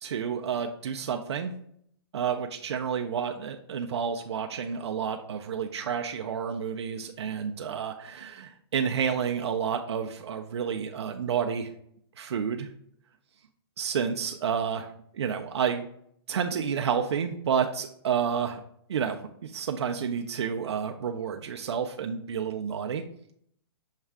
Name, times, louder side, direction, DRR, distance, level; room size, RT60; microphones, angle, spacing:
voice 1, 0.0-1.5 2.1-11.7 12.2-12.7 13.8-14.9 15.1-15.8 16.3-18.6 18.9-23.0, right 7 dB, 85° right, 4 dB, 0.4 m, -30 dB
6.4 x 2.4 x 3.4 m, 0.68 s
hypercardioid pair, 150°, 14 cm